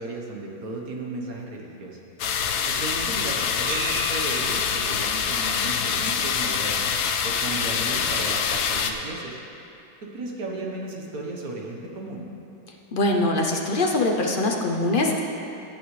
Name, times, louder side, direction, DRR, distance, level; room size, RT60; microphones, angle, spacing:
voice 1, 0.0-2.0 2.6-7.0 7.2-9.4 10.0-12.3, right 2 dB, 60° right, -1 dB, 1.6 m, -35 dB
sound 1, 2.2-8.9, left 7 dB, 70° left, 1.1 m, -25 dB
sound 2, 3.7-7.7, right 1 dB, 25° right, 0.7 m, -38 dB
voice 2, 12.9-15.2, left 2 dB, 45° left, 1 dB, 0.7 m, -23 dB
16.5 x 8.5 x 3.3 m, 2.8 s
omnidirectional pair, 1.8 m